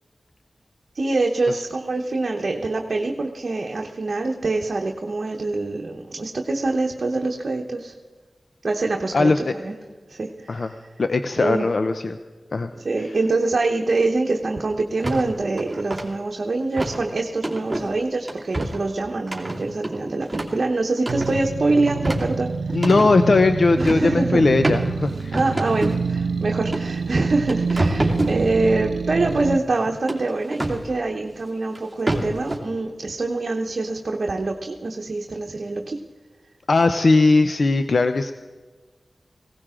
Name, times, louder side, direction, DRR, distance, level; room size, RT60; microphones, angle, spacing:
voice 1, 0.9-7.9 8.6-9.7 10.1-10.8 11.4-11.7 12.8-22.8 23.8-24.4 25.3-36.0, right 3 dB, 65° right, 1 dB, 1.0 m, -25 dB
voice 2, 11.0-12.2 12.5-12.7 22.7-25.4 28.0-28.2 36.7-38.3, left 3 dB, 65° left, 8 dB, 0.6 m, -19 dB
sound 1, 15.0-15.2 15.6-16.0 16.8-17.0 17.4-17.9 18.3-18.8 19.3-20.6 21.0-21.5 21.9-23.1 23.8-24.1 24.6-24.8 25.3-26.0 26.7-26.8 27.2-28.4 30.1-30.8 31.8-31.9 32.1-32.6, right 1 dB, 20° right, 2.7 m, -26 dB
sound 2, 21.1-29.6, right 5 dB, 90° right, 0.4 m, -27 dB
18.5 x 17.0 x 3.7 m, 1.4 s
cardioid pair, 55°, 0 cm